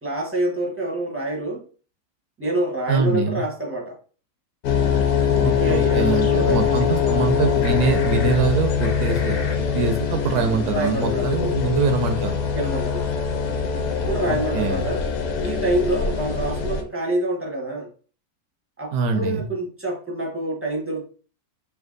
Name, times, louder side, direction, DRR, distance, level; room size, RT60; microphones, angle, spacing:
voice 1, 0.0-1.6 2.4-4.0 5.4-7.1 10.7-11.6 12.5-13.2 13.7-15.1 15.4-17.9 18.8-21.0, right 1 dB, 10° right, -2 dB, 0.8 m, -27 dB
voice 2, 2.9-3.4 5.4-12.4 14.3-14.8 18.9-19.5, right 5 dB, 75° right, 6 dB, 1.1 m, -24 dB
sound 1, 4.6-16.8, left 7 dB, 80° left, 1.3 m, -23 dB
3.3 x 2.7 x 3.9 m, 0.38 s
omnidirectional pair, 1.8 m